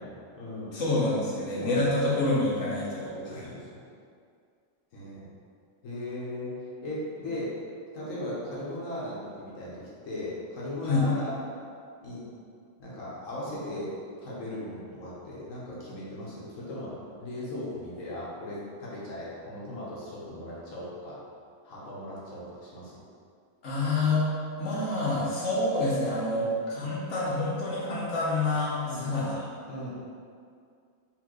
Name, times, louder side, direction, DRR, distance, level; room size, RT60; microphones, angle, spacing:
voice 1, 0.0-0.8 1.5-2.0 2.9-3.8 4.9-5.2 5.8-7.5 7.9-11.3 12.0-12.2 12.8-13.9 14.2-21.2 21.6-23.0 26.3-26.5 28.8-29.1 29.7-29.9, left 1 dB, 90° left, -7 dB, 1.4 m, -38 dB
voice 2, 0.7-3.5 10.8-11.1 23.6-24.3 24.6-29.4, left 2 dB, 70° left, -6 dB, 1.3 m, -27 dB
4.3 x 3.4 x 3.0 m, 2.3 s
omnidirectional pair, 1.3 m